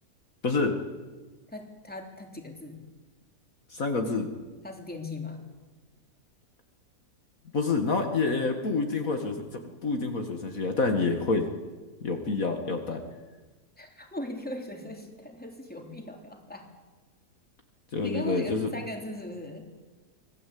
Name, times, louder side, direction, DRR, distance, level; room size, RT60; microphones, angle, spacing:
voice 1, 0.4-0.7 3.7-4.3 7.5-9.4 9.8-11.5 12.0-13.0 17.9-18.7, left 3 dB, 55° left, 4 dB, 2.3 m, -27 dB
voice 2, 1.5-2.8 4.6-5.4 13.8-16.7 18.0-19.7, left 1 dB, 5° left, 2 dB, 3.3 m, -39 dB
25.5 x 18.5 x 8.6 m, 1.3 s
omnidirectional pair, 1.7 m